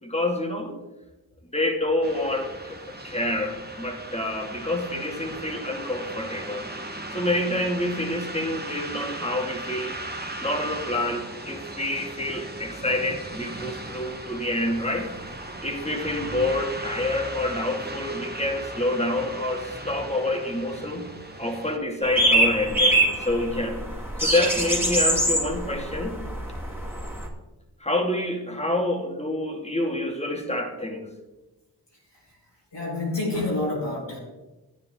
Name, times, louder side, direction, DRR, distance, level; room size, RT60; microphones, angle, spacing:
voice 1, 0.0-0.7 1.5-6.7 7.1-10.0 10.4-15.1 15.6-21.1 21.4-23.8 24.2-26.2 27.8-31.1, left 1 dB, 15° left, 2 dB, 2.1 m, -27 dB
sound 1, 2.0-21.8, right 2 dB, 25° right, 1.5 m, -37 dB
sound 2, 22.0-27.3, right 1 dB, 5° right, 2.5 m, -24 dB
voice 2, 32.7-34.2, left 2 dB, 80° left, -3 dB, 4.4 m, -28 dB
13.0 x 9.4 x 3.7 m, 1.1 s
wide cardioid pair, 50°, 41 cm